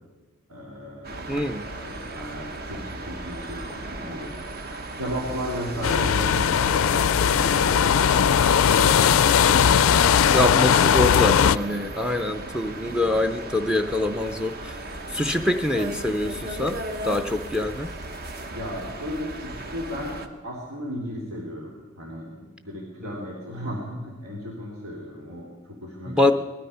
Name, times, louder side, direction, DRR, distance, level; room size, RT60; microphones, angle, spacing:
voice 1, 0.5-1.3 1.7-7.9 12.8-13.2 15.4-15.5 18.5-20.2 20.4-26.3, equal, 85° right, -2 dB, 3.0 m, -35 dB
sound 1, 1.0-20.3, right 2 dB, 45° right, 1.1 m, -36 dB
voice 2, 1.3-1.7 10.3-14.8 15.1-16.8 17.0-17.9 23.0-23.3 26.1-26.3, left 1 dB, 5° right, 6 dB, 0.5 m, -25 dB
sound 2, 5.8-11.6, left 8 dB, 70° left, 0.4 m, -19 dB
19.0 x 12.5 x 5.6 m, 1.3 s
head